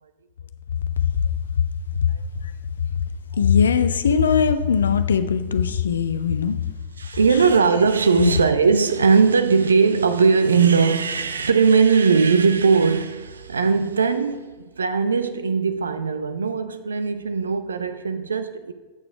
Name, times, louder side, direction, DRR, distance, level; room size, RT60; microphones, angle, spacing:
voice 1, 3.4-6.6 8.2-8.3, left 7 dB, 70° left, 0.5 m, -20 dB
voice 2, 7.0-18.7, right 5 dB, 70° right, 0.4 m, -19 dB
8.3 x 6.8 x 4.6 m
figure-of-eight pair, 90°, 0 cm